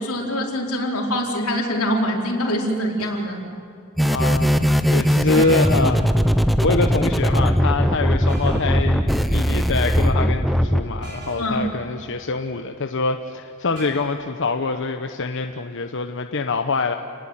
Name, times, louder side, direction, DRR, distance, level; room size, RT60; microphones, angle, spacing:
voice 1, 0.0-3.4 11.4-11.7, equal, 90° left, 0 dB, 4.4 m, -24 dB
sound 1, 3.0-3.3 5.3-6.1 8.3-8.8 11.0-11.6 13.8-14.1, right 2 dB, 55° right, 6.9 m, -38 dB
voice 2, 4.0-6.1 6.4-17.0, left 3 dB, 60° left, 6 dB, 1.0 m, -25 dB
sound 2, 4.0-10.8, equal, ahead, 0.9 m, -19 dB
29.0 x 19.5 x 9.2 m, 2.7 s
head